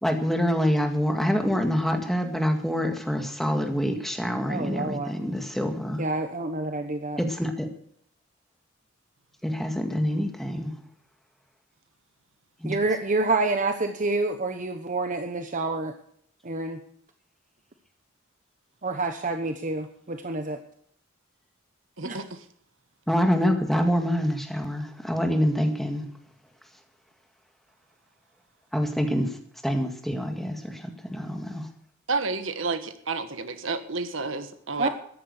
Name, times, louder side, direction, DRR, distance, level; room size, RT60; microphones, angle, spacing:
voice 1, 0.0-6.0 7.2-7.7 9.4-10.7 12.6-12.8 23.1-26.0 28.7-29.3 29.6-31.7, equal, ahead, 4 dB, 2.0 m, -26 dB
voice 2, 4.5-5.3 6.0-7.2 12.6-15.9 16.4-16.8 18.8-20.6 22.0-22.2 34.8-34.9, right 3 dB, 40° right, 7 dB, 1.1 m, -28 dB
voice 3, 22.0-22.4 32.1-34.9, right 3 dB, 75° right, 10 dB, 1.5 m, -30 dB
14.0 x 11.0 x 6.6 m, 0.64 s
head